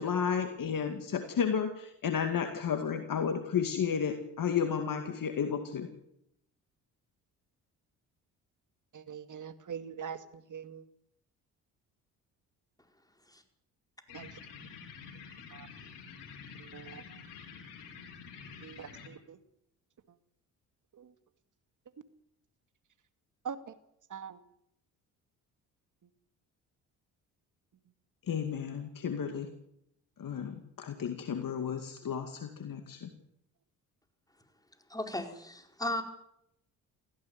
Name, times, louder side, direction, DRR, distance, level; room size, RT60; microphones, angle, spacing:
voice 1, 0.0-5.9 28.3-29.5 30.2-33.1, left 7 dB, 50° left, 2.2 m, -32 dB
voice 2, 8.9-10.2 10.5-10.8 14.1-14.3 15.5-15.7 16.7-17.0 18.6-18.9 19.3-19.4 23.5-23.6 24.1-24.4, right 7 dB, 45° right, 2.2 m, -41 dB
sound 1, 14.1-19.1, left 6 dB, 75° left, 4.6 m, -48 dB
voice 3, 34.9-36.0, left 1 dB, 10° left, 4.9 m, -36 dB
18.5 x 15.5 x 9.6 m
hypercardioid pair, 55°, 41 cm